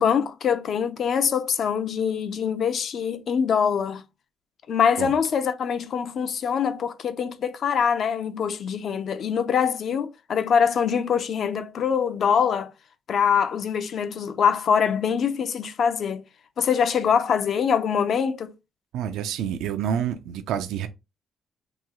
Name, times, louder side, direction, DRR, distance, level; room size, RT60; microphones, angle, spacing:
voice 1, 0.0-4.0 4.7-12.7 13.1-16.2 16.6-18.5, left 7 dB, 60° left, 0.5 m, -24 dB
voice 2, 18.9-20.9, right 9 dB, 85° right, 0.4 m, -28 dB
3.0 x 2.3 x 3.6 m
cardioid pair, 90°, 0 cm